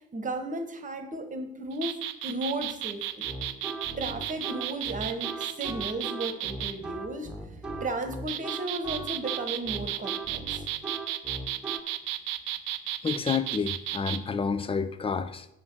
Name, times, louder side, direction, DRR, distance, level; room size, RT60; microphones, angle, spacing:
voice 1, 0.1-3.3 4.0-10.7, right 2 dB, 25° right, 8 dB, 1.4 m, -35 dB
sound 1, 1.7-6.7 8.0-14.2, right 13 dB, 60° right, 0.7 m, -33 dB
sound 2, 3.2-11.8, right 2 dB, 5° right, 1.5 m, -38 dB
voice 2, 13.0-15.5, left 5 dB, 20° left, 11 dB, 0.7 m, -29 dB
7.8 x 5.7 x 6.3 m, 0.83 s
figure-of-eight pair, 60°, 31 cm